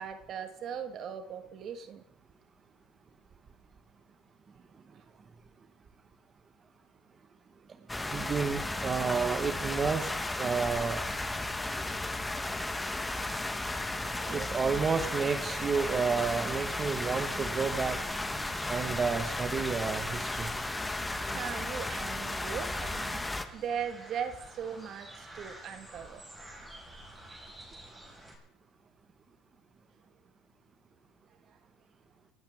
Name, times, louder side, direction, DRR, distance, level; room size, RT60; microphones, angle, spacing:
voice 1, 0.0-2.0 4.9-5.0 14.2-14.8 21.3-26.3 31.5-31.6, right 7 dB, 45° right, 8 dB, 1.7 m, -39 dB
sound 1, 7.9-23.5, left 2 dB, 10° left, 1.2 m, -34 dB
voice 2, 8.1-10.1 10.4-11.1 14.3-18.0 18.7-20.5, right 5 dB, 30° right, 6 dB, 1.4 m, -30 dB
sound 2, 15.6-28.4, right 1 dB, 15° right, 5.3 m, -49 dB
29.5 x 11.5 x 3.7 m, 0.71 s
supercardioid pair, 110°, 0 cm